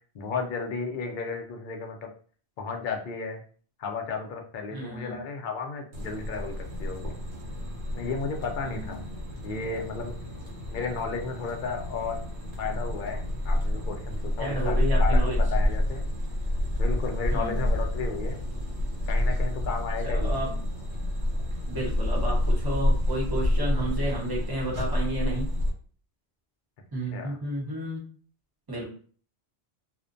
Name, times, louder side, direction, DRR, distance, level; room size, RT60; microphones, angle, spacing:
voice 1, 0.1-2.1 2.6-3.4 3.8-7.2 7.9-9.0 9.4-10.2 10.7-12.2 12.6-16.0 16.8-18.4 19.1-20.6 27.1-27.4, left 4 dB, 60° left, 3 dB, 0.6 m, -33 dB
voice 2, 4.7-5.2 8.6-9.0 14.4-15.4 17.3-17.7 20.0-20.6 21.7-25.5 26.9-28.0 28.7-28.8, right 1 dB, 20° right, -4 dB, 0.8 m, -32 dB
sound 1, 5.9-25.7, left 1 dB, 80° right, 1.0 m, -28 dB
2.5 x 2.1 x 2.5 m, 0.44 s
omnidirectional pair, 1.1 m